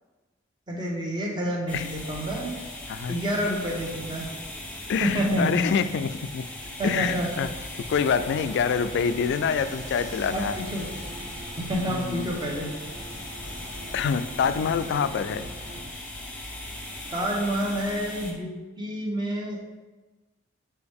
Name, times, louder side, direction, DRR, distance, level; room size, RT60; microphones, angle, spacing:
voice 1, 0.7-2.5 3.1-4.2 5.0-5.6 6.8-7.4 10.3-10.9 11.6-12.7 17.1-19.6, equal, 25° right, -1 dB, 1.1 m, -28 dB
sound 1, 1.7-18.3, left 1 dB, 5° left, 1.0 m, -39 dB
voice 2, 2.9-3.2 4.9-6.5 6.8-7.5 7.9-10.6 11.9-12.3 13.9-15.5, left 6 dB, 60° left, 12 dB, 0.3 m, -26 dB
sound 2, 7.9-15.8, right 1 dB, 70° right, 1.9 m, -42 dB
6.8 x 4.4 x 3.5 m, 1.2 s
head